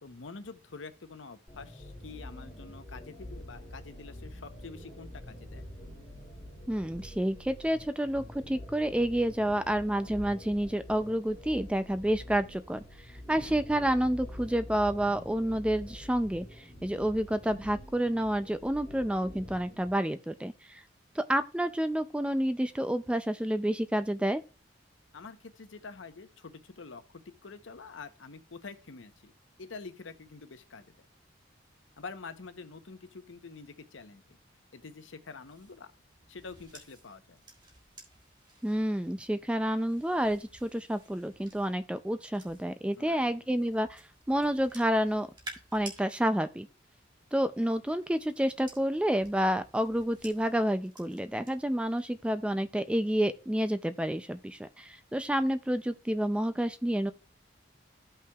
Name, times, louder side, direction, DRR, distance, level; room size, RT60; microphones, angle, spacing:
voice 1, 0.0-5.7 13.3-13.6 25.1-29.3 29.6-30.9 32.0-34.4 34.7-35.9 36.3-37.4 43.0-43.4, left 4 dB, 85° left, 0.8 m, -47 dB
sound 1, 1.5-19.9, left 1 dB, 15° left, 2.5 m, -46 dB
voice 2, 6.7-12.8 13.3-20.8 21.2-24.4 38.6-45.3 45.7-46.7 47.3-57.1, right 1 dB, 5° right, 0.3 m, -29 dB
sound 2, 35.4-43.0 43.6-46.0 47.3-51.5 51.9-52.2, right 2 dB, 25° right, 1.6 m, -53 dB
14.0 x 5.6 x 2.3 m
head